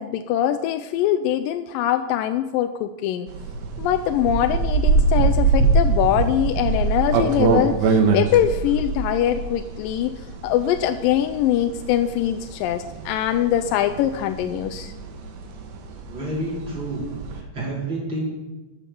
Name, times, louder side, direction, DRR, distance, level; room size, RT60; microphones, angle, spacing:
voice 1, 0.0-3.3 3.8-10.1 10.4-14.9, left 11 dB, 80° left, 9 dB, 2.2 m, -23 dB
sound 1, 3.3-17.4, right 4 dB, 85° right, 3.2 m, -23 dB
voice 2, 16.1-17.0 17.3-18.3, right 1 dB, 35° right, -5 dB, 4.7 m, -29 dB
12.5 x 7.6 x 6.9 m, 1.1 s
omnidirectional pair, 4.1 m